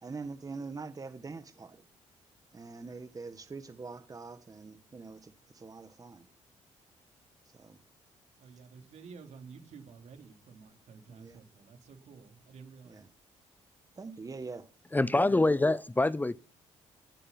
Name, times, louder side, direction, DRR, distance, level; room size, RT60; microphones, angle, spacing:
voice 1, 0.0-1.8 2.5-6.2 7.5-7.8 11.1-11.4 12.9-13.0 14.0-14.6, right 4 dB, 30° right, 1.5 m, -44 dB
voice 2, 8.4-13.0 15.1-15.2, right 5 dB, 65° right, 3.5 m, -51 dB
voice 3, 14.9-16.4, left 2 dB, 15° left, 0.7 m, -25 dB
17.0 x 10.0 x 5.9 m
cardioid pair, 75°, 12 cm